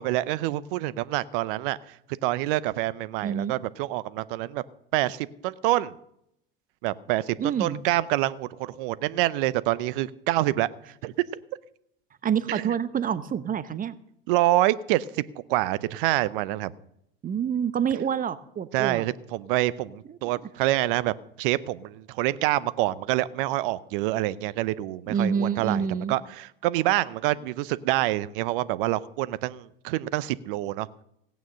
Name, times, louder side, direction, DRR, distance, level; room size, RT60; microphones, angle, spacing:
voice 1, 0.0-1.8 2.2-4.6 4.9-5.9 6.8-10.7 11.0-11.1 12.5-12.7 14.3-15.0 15.5-16.7 18.7-30.9, right 16 dB, 65° right, 18 dB, 0.8 m, -26 dB
voice 2, 3.2-3.5 7.4-7.8 12.2-14.0 17.2-19.0 20.1-20.2 25.1-26.2, right 7 dB, 30° right, 15 dB, 0.8 m, -27 dB
17.0 x 9.2 x 6.3 m, 0.76 s
hypercardioid pair, 80°, 29 cm